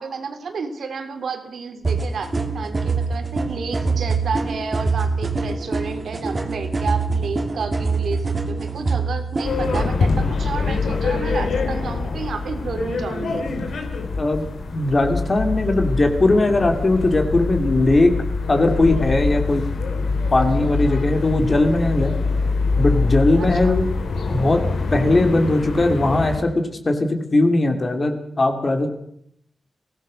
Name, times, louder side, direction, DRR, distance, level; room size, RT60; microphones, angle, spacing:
voice 1, 0.0-13.5 23.4-23.8, right 5 dB, 75° right, 6 dB, 3.2 m, -31 dB
sound 1, 1.8-9.9, right 4 dB, 25° right, 2.7 m, -24 dB
sound 2, 9.4-26.4, left 4 dB, 80° left, 4.3 m, -24 dB
voice 2, 14.7-18.2 18.5-19.6 20.3-22.1 22.8-23.9 24.3-24.6 24.9-28.9, left 2 dB, 30° left, 5 dB, 2.8 m, -19 dB
24.0 x 17.5 x 6.5 m, 0.72 s
wide cardioid pair, 155°, 0 cm